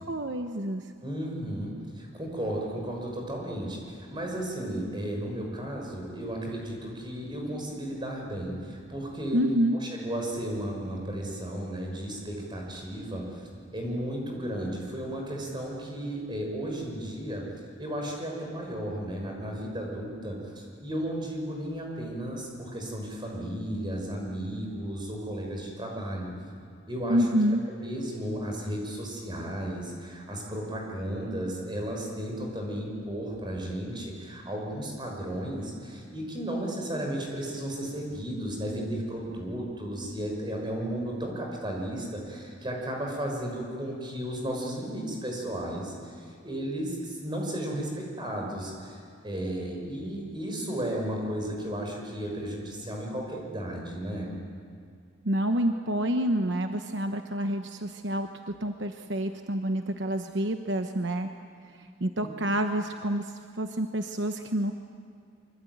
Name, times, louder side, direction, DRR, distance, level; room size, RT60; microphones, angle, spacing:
voice 1, 0.1-0.8 9.3-9.8 27.1-27.6 55.2-61.3 61.7-64.7, equal, 65° right, 6 dB, 1.1 m, -28 dB
voice 2, 1.0-9.5 9.8-17.5 17.8-26.3 26.9-27.2 27.8-54.3 62.2-62.3, right 1 dB, 25° right, 0 dB, 5.8 m, -34 dB
25.0 x 24.0 x 9.4 m, 2.2 s
head